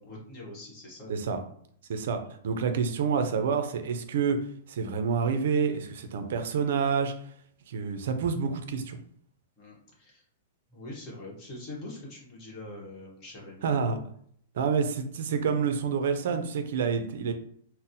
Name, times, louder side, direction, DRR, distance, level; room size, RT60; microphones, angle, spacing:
voice 1, 0.0-1.4 9.6-10.2 10.7-13.7, left 2 dB, 30° left, -3 dB, 1.0 m, -43 dB
voice 2, 1.1-1.4 1.9-2.2 2.4-4.4 4.7-7.1 7.7-9.0 13.6-14.0 14.5-17.3, right 6 dB, 65° right, 7 dB, 0.4 m, -28 dB
4.0 x 2.0 x 2.6 m, 0.63 s
hypercardioid pair, 155°, 0 cm